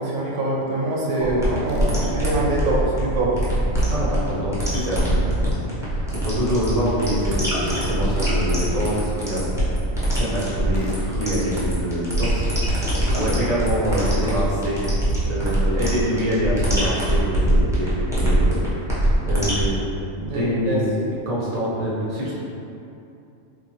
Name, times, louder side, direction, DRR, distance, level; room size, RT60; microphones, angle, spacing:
voice 1, 0.0-3.4 20.2-20.8, right 1 dB, 90° right, -4 dB, 1.1 m, -24 dB
sound 1, 1.2-19.7, right 1 dB, 5° right, 0.5 m, -23 dB
Tools, 1.7-1.9 4.7-5.0 7.7-8.0 10.7-11.0, left 3 dB, 65° left, 0.6 m, -39 dB
voice 2, 3.9-5.5 5.9-9.5 10.1-12.4 13.0-14.8 15.3-19.8 20.3-22.4, equal, 35° right, -7 dB, 0.7 m, -25 dB
3.8 x 2.5 x 2.9 m, 2.7 s
omnidirectional pair, 1.4 m